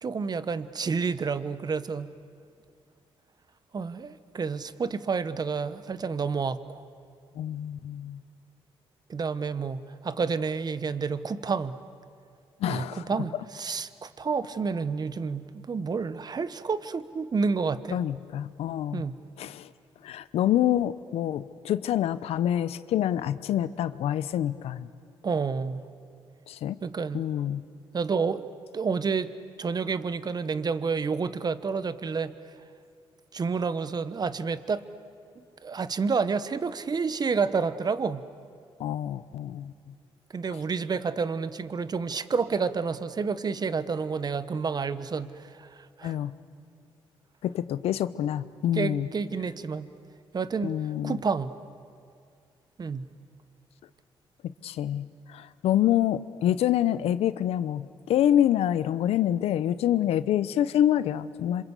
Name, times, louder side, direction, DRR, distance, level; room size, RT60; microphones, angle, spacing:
voice 1, 0.0-2.1 3.7-6.9 9.1-11.8 12.7-18.0 18.9-19.1 25.2-25.8 26.8-27.3 27.9-28.5 28.7-29.3 29.6-32.3 33.3-34.8 35.4-38.2 40.3-46.2 48.7-49.9 50.3-51.5 52.8-53.1, right 5 dB, 40° right, 14 dB, 1.2 m, -29 dB
voice 2, 7.3-8.2 12.6-13.0 17.9-19.0 19.4-19.7 20.0-24.9 26.5-26.8 27.1-27.6 38.8-39.7 46.0-46.3 47.4-49.1 50.6-51.2 54.6-61.6, left 11 dB, 85° left, 15 dB, 0.8 m, -26 dB
26.5 x 26.5 x 8.3 m, 2.3 s
cardioid pair, 75°, 10 cm